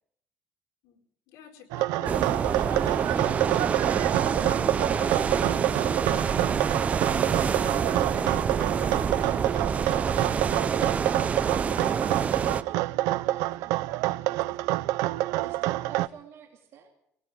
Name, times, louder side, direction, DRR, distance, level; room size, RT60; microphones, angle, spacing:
voice 1, 1.3-9.4 15.6-16.0, left 8 dB, 85° left, 1 dB, 4.5 m, -49 dB
sound 1, 1.7-16.1, right 17 dB, 90° right, 0.6 m, -27 dB
sound 2, 2.0-12.6, right 6 dB, 25° right, 0.6 m, -27 dB
voice 2, 10.7-16.9, right 8 dB, 50° right, 3 dB, 2.5 m, -50 dB
21.0 x 18.5 x 3.7 m, 0.70 s
cardioid pair, 160°, 6 cm